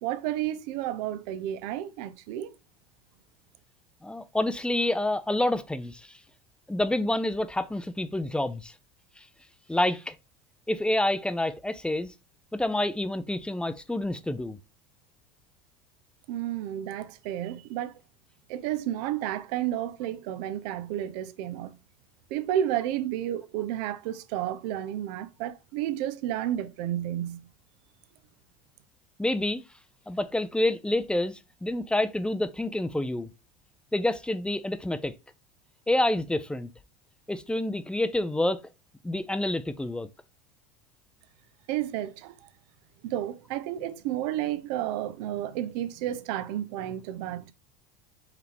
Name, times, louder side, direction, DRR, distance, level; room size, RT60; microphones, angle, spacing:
voice 1, 0.0-2.5 16.3-18.0 18.5-21.8 22.3-27.4 41.7-42.5 43.0-47.5, right 12 dB, 70° right, 0.6 m, -31 dB
voice 2, 4.0-6.1 6.7-8.7 9.7-10.1 10.7-12.1 12.5-14.6 29.2-29.6 30.1-33.3 33.9-35.1 35.9-36.7 37.3-38.6 39.0-40.1, left 1 dB, 5° left, 0.4 m, -28 dB
4.9 x 3.2 x 3.4 m
supercardioid pair, 100°, 21 cm